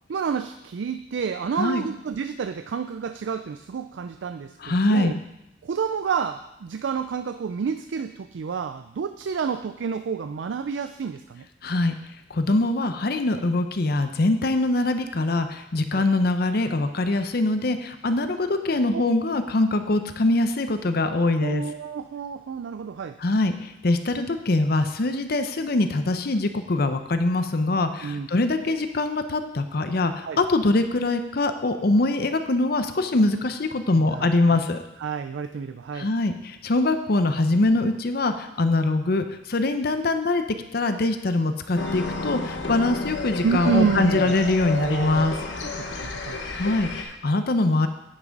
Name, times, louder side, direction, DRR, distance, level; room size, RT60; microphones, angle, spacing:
voice 1, 0.1-5.2 5.6-11.5 15.9-16.0 18.9-19.0 21.4-23.2 28.0-28.3 30.3-30.4 34.0-34.6 35.0-36.1 43.4-44.3 44.8-45.3 45.6-46.4, right 6 dB, 80° right, 10 dB, 0.4 m, -29 dB
voice 2, 4.6-5.2 11.6-11.9 12.3-21.6 23.2-34.8 36.0-40.4 40.7-45.3 46.5-47.9, left 2 dB, 55° left, 8 dB, 0.7 m, -23 dB
sound 1, 41.8-47.0, left 4 dB, 75° left, 1.0 m, -31 dB
9.7 x 6.0 x 5.2 m, 0.88 s
head